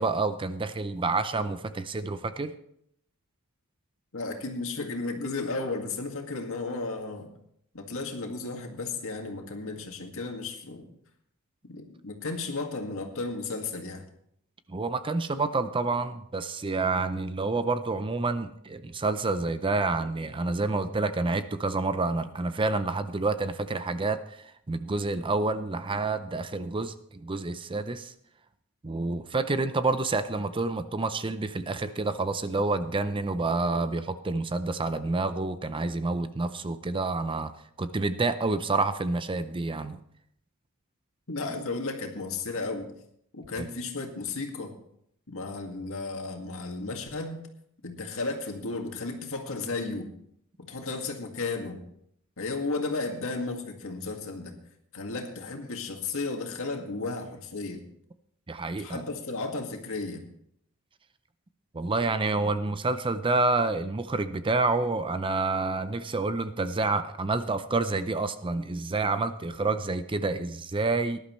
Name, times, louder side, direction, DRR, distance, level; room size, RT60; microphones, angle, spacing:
voice 1, 0.0-2.5 14.7-28.1 28.8-37.5 37.8-40.0 43.6-43.7 58.5-59.0 61.7-71.2, right 3 dB, 25° right, 11 dB, 0.5 m, -28 dB
voice 2, 4.1-7.3 7.7-10.9 11.7-14.0 41.3-42.9 43.3-44.8 45.3-47.4 47.8-50.1 50.6-51.8 52.4-54.5 54.9-57.8 58.8-60.2, left 3 dB, 65° left, 3 dB, 2.1 m, -34 dB
18.5 x 11.5 x 3.2 m, 0.72 s
head